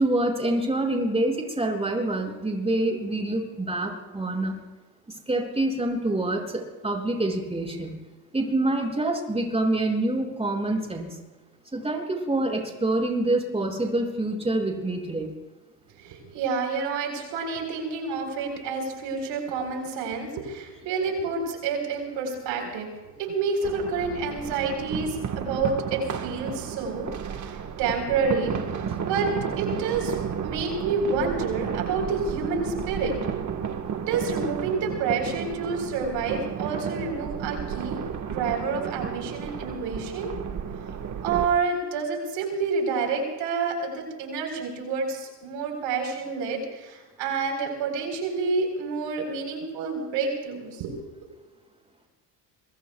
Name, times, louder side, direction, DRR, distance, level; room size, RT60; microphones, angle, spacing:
voice 1, 0.0-4.6 5.3-7.9 8.3-11.2 11.7-15.3, right 2 dB, 15° right, 1 dB, 6.2 m, -26 dB
voice 2, 16.0-27.1 27.4-28.6 29.0-29.3 29.6-30.2 30.4-33.2 34.1-38.0 38.3-40.3 41.2-51.0, right 4 dB, 75° right, 3 dB, 4.3 m, -29 dB
sound 1, 23.6-41.5, right 7 dB, 40° right, 1.5 m, -32 dB
26.0 x 23.5 x 2.3 m, 1.2 s
supercardioid pair, 90°, 45 cm